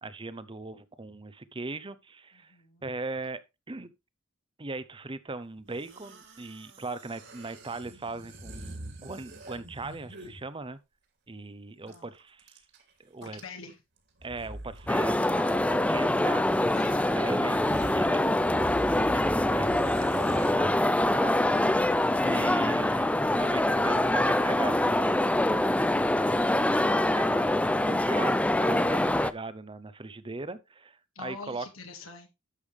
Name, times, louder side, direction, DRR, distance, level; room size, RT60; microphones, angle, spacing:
voice 1, 0.0-2.6 2.8-3.9 4.6-10.8 11.3-12.6 13.0-13.4 14.2-16.4 16.9-18.5 18.8-21.8 22.2-25.5 26.3-31.7, right 3 dB, 25° right, 0.8 m, -39 dB
voice 2, 2.5-2.8 11.9-12.0 13.2-13.7 16.7-17.3 26.3-26.4 31.2-32.3, left 4 dB, 75° left, 2.1 m, -44 dB
sound 1, 5.7-10.4 11.9-12.0 12.2-12.8 13.2-13.7 14.2-15.0 15.2-15.4 16.5-16.6 17.1-17.2 17.5-20.5, right 1 dB, 55° right, 2.9 m, -43 dB
sound 2, 14.9-29.3, left 1 dB, 5° left, 0.4 m, -25 dB
11.5 x 7.0 x 3.4 m
head